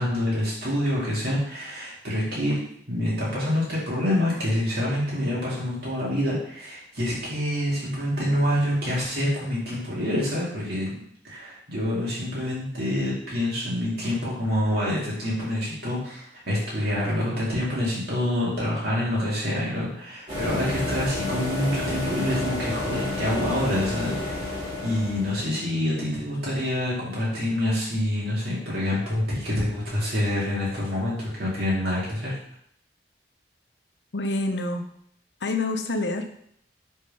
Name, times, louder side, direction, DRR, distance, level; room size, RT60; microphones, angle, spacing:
voice 1, 0.0-2.6 2.9-11.0 11.2-32.4, left 1 dB, 60° right, -7 dB, 2.1 m, -27 dB
sound 1, 20.3-25.5, left 1 dB, 35° right, 2.2 m, -30 dB
voice 2, 34.1-34.9 35.4-36.4, left 2 dB, 75° left, 6 dB, 0.8 m, -27 dB
5.1 x 4.4 x 5.3 m, 0.67 s
head